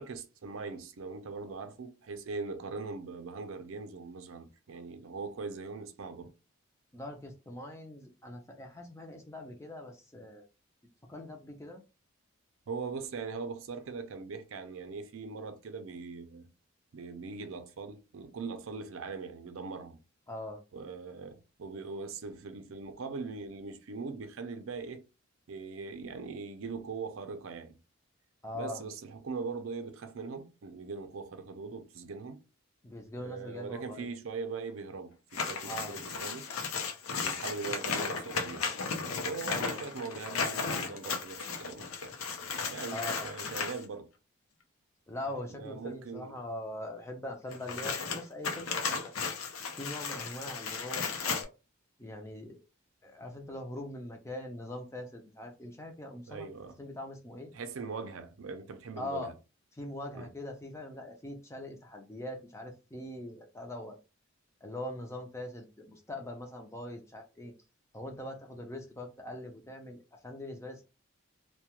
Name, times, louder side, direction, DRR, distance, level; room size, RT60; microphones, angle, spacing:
voice 1, 0.0-6.3 12.7-16.5 16.9-20.0 20.7-25.0 25.5-27.8 28.5-32.4 33.2-36.5 37.1-38.7 39.2-42.2 42.7-44.1 45.5-46.3 56.3-56.8 57.5-59.3 60.1-60.3, right 4 dB, 75° right, 0.5 m, -41 dB
voice 2, 6.9-10.5 11.1-11.8 20.3-20.6 28.4-28.8 32.8-34.1 35.6-36.0 39.5-39.9 42.9-43.4 45.1-49.1 49.8-51.5 52.0-52.6 53.0-56.5 56.8-57.5 59.0-59.3 59.7-64.0 64.6-67.5 67.9-70.8, left 1 dB, 15° left, 0.4 m, -42 dB
sound 1, 35.3-43.8 47.5-51.4, left 5 dB, 90° left, 0.6 m, -35 dB
2.3 x 2.2 x 2.9 m
head